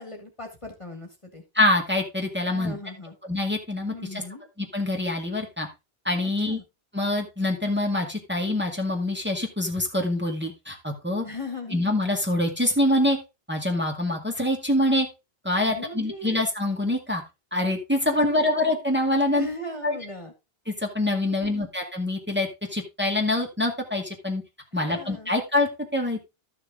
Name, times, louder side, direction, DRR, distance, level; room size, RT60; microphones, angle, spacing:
voice 1, 0.0-1.4 2.5-3.1 3.9-4.4 6.4-6.6 11.2-11.8 15.7-16.4 18.1-18.5 19.3-20.3 21.2-21.7 24.9-25.3, left 2 dB, 30° left, 4 dB, 2.0 m, -38 dB
voice 2, 1.5-2.7 3.3-4.2 4.6-5.7 6.0-6.6 6.9-11.3 11.7-13.2 13.5-15.1 15.4-17.2 17.5-19.5 19.8-20.0 20.7-24.4 24.7-26.2, left 1 dB, 10° right, 1 dB, 2.0 m, -25 dB
13.0 x 6.5 x 3.6 m, 0.25 s
omnidirectional pair, 1.0 m